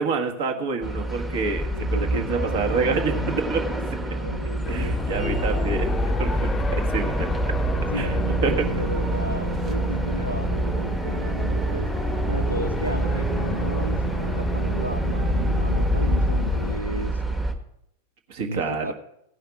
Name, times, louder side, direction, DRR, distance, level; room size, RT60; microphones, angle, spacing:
voice 1, 0.0-3.6 4.7-5.9 6.2-7.3 7.9-8.6 18.3-18.9, right 4 dB, 50° right, 4 dB, 1.4 m, -27 dB
sound 1, 0.8-17.5, right 1 dB, 10° right, 1.3 m, -29 dB
voice 2, 1.4-3.4 4.1-5.4 7.7-17.2 18.4-18.9, equal, 90° right, 10 dB, 0.4 m, -34 dB
sound 2, 4.6-16.8, left 4 dB, 15° left, 0.7 m, -31 dB
sound 3, 5.3-16.5, right 2 dB, 25° right, 0.7 m, -28 dB
16.0 x 5.7 x 5.8 m, 0.79 s
figure-of-eight pair, 90°, 0 cm